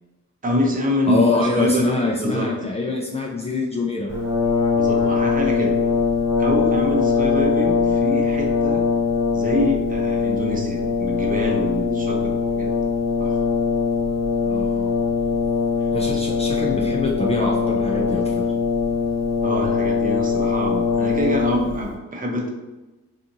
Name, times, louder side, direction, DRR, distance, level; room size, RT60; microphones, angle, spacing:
voice 1, 0.4-2.5 4.7-5.7 6.4-8.8 9.3-12.7 13.2-13.4 15.8-16.2 19.4-22.5, equal, 30° right, -1 dB, 0.7 m, -25 dB
voice 2, 1.1-4.1 14.5-14.9 15.9-18.4, left 3 dB, 20° left, -2 dB, 0.3 m, -24 dB
Brass instrument, 4.1-21.9, left 5 dB, 60° left, 0.8 m, -21 dB
2.7 x 2.4 x 2.6 m, 1.1 s
cardioid pair, 90°, 30 cm